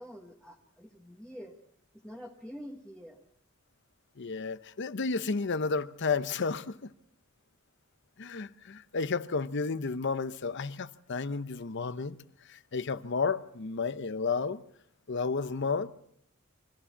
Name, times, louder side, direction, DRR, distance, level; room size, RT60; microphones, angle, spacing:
voice 1, 0.0-1.6 2.0-3.2, equal, 5° left, 1.4 m, -46 dB
voice 2, 4.2-6.8 8.2-12.2 12.5-14.6 15.1-15.9, left 4 dB, 60° left, 0.8 m, -32 dB
26.0 x 14.0 x 7.3 m
head